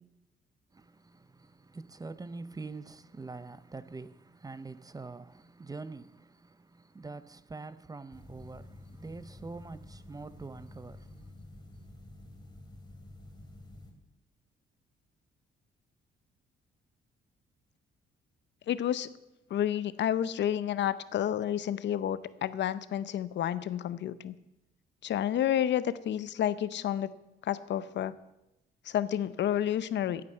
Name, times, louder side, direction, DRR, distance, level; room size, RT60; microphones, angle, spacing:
voice 1, 0.7-11.6, right 3 dB, 20° right, 0.5 m, -45 dB
sound 1, 8.1-13.9, left 1 dB, 20° left, 2.6 m, -50 dB
voice 2, 18.7-19.1 19.5-24.3 25.0-27.1 27.4-28.1 28.8-30.2, left 10 dB, 65° left, 0.7 m, -30 dB
15.5 x 8.7 x 5.5 m
cardioid pair, 90°, 20 cm